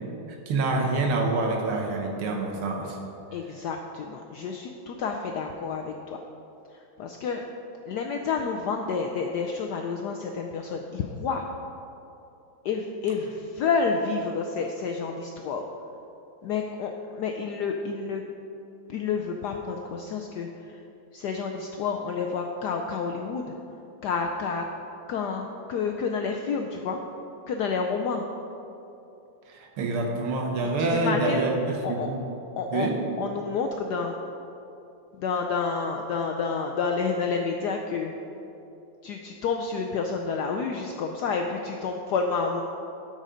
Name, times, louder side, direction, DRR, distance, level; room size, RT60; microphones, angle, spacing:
voice 1, 0.3-3.0 29.5-32.2 32.7-32.9, right 3 dB, 85° right, 2 dB, 2.0 m, -26 dB
voice 2, 3.3-6.2 6.7-7.4 7.8-11.4 12.6-15.7 16.4-18.2 18.9-20.8 21.1-23.5 24.0-24.7 25.1-27.0 27.5-28.2 30.6-31.4 31.8-32.1 32.6-32.9 33.2-34.1 35.1-38.1 39.0-42.6, left 5 dB, 80° left, 3 dB, 0.9 m, -29 dB
12.5 x 5.2 x 5.0 m, 2.9 s
omnidirectional pair, 2.3 m